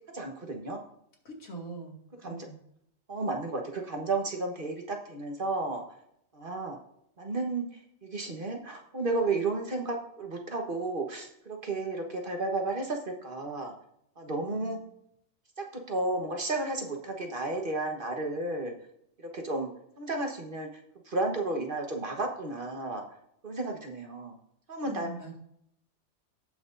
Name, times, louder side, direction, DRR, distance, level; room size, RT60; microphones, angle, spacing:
voice 1, 0.1-0.8 2.2-2.4 3.1-5.8 6.3-6.8 7.2-13.7 14.2-14.8 15.6-18.7 19.2-19.7 20.0-20.7 21.0-23.0 23.4-24.3 24.7-25.1, right 2 dB, 40° right, 2 dB, 1.4 m, -32 dB
voice 2, 1.2-2.0 2.2-2.6 14.4-14.8 24.8-25.4, right 2 dB, 85° left, -1 dB, 2.6 m, -42 dB
17.5 x 6.0 x 2.6 m, 0.73 s
omnidirectional pair, 1.4 m